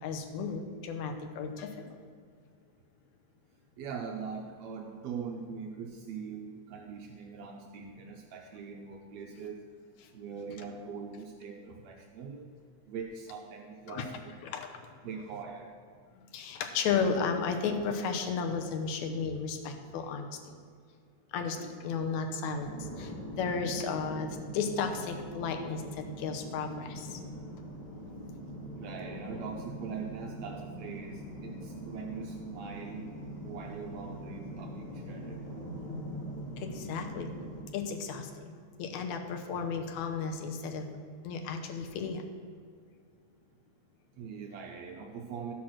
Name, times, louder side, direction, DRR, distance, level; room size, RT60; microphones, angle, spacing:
voice 1, 0.0-1.9 10.0-10.1 13.9-14.1 14.4-14.7 16.3-20.6 21.3-27.2 36.6-37.3 37.7-38.5 38.8-40.9 41.2-42.2, left 5 dB, 80° left, 5 dB, 2.2 m, -34 dB
voice 2, 3.8-9.6 10.1-12.5 12.9-14.3 15.0-15.7 28.8-33.0 33.4-35.4 44.2-45.5, right 5 dB, 75° right, 2 dB, 1.9 m, -42 dB
sound 1, 22.6-37.6, equal, 35° left, 3.0 m, -42 dB
13.0 x 6.0 x 6.4 m, 2.1 s
omnidirectional pair, 3.3 m